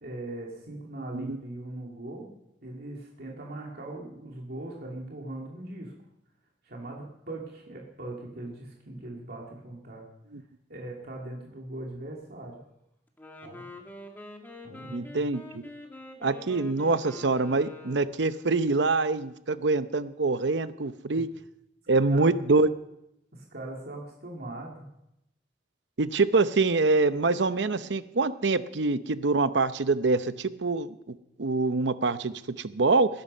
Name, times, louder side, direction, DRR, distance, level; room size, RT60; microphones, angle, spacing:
voice 1, 0.0-2.3 2.6-5.9 6.6-10.0 10.7-12.6 13.4-13.7 14.6-15.3 21.1-21.2 22.0-22.4 23.3-24.9, right 2 dB, 60° right, -2 dB, 2.6 m, -40 dB
Wind instrument woodwind instrument, 13.1-18.4, left 1 dB, 10° left, 1.9 m, -45 dB
voice 2, 14.9-15.6 16.2-21.3 21.9-22.7 26.0-30.9 31.4-33.1, right 3 dB, 85° right, 13 dB, 0.8 m, -25 dB
20.0 x 11.0 x 5.5 m, 0.83 s
head